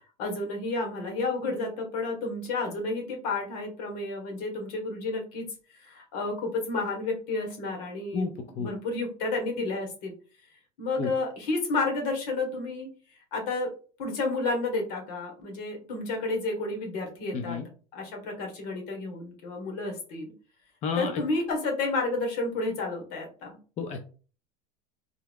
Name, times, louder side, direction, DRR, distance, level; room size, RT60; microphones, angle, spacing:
voice 1, 0.2-5.5 5.7-8.3 8.6-10.1 10.8-12.9 13.3-13.7 14.0-17.6 17.9-20.3 21.0-23.6, left 3 dB, 75° left, 2 dB, 1.5 m, -31 dB
voice 2, 8.1-8.7 11.0-11.1 17.3-17.7 20.8-21.2 23.8-24.0, left 5 dB, 35° left, 5 dB, 0.5 m, -31 dB
3.5 x 2.1 x 3.6 m, 0.38 s
supercardioid pair, 110°, 20 cm